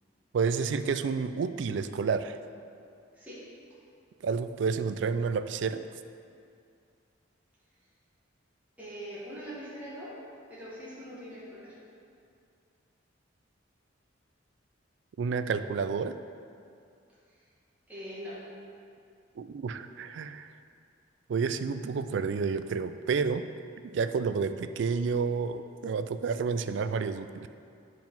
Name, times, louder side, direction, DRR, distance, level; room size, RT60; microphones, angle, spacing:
voice 1, 0.3-2.4 4.2-5.9 15.2-16.1 19.4-20.5 21.3-23.5 23.8-27.5, right 5 dB, 65° right, 11 dB, 0.3 m, -30 dB
voice 2, 8.8-10.1 10.5-11.7 17.9-18.4, equal, 10° right, -10 dB, 1.7 m, -42 dB
7.6 x 4.7 x 5.3 m, 2.4 s
head